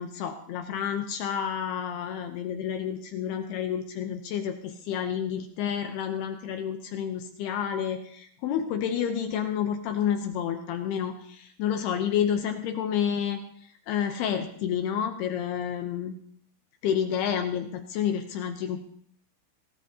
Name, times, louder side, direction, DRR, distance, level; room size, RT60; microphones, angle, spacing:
voice 1, 0.0-13.4 13.9-16.1 16.8-18.8, left 8 dB, 75° left, 6 dB, 2.4 m, -29 dB
24.5 x 17.5 x 2.8 m, 0.63 s
omnidirectional pair, 5.4 m